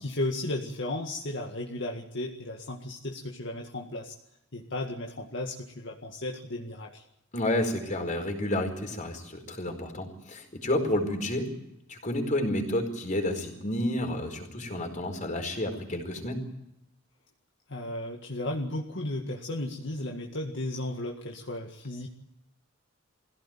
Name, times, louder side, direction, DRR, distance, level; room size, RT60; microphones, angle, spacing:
voice 1, 0.0-4.1 4.5-7.0 17.7-22.1, left 1 dB, 60° left, 0 dB, 2.0 m, -34 dB
voice 2, 7.3-11.5 11.9-16.4, left 1 dB, 40° left, 4 dB, 4.7 m, -30 dB
22.0 x 16.5 x 9.1 m, 0.85 s
head